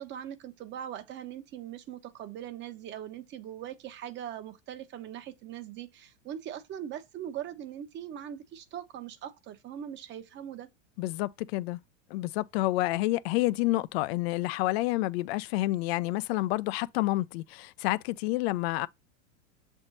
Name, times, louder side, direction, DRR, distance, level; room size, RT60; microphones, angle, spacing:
voice 1, 0.0-10.7, right 10 dB, 30° right, 0.9 m, -41 dB
voice 2, 11.0-11.8 12.1-18.9, left 18 dB, 55° left, 0.5 m, -29 dB
7.0 x 3.5 x 4.1 m
supercardioid pair, 130°, 38 cm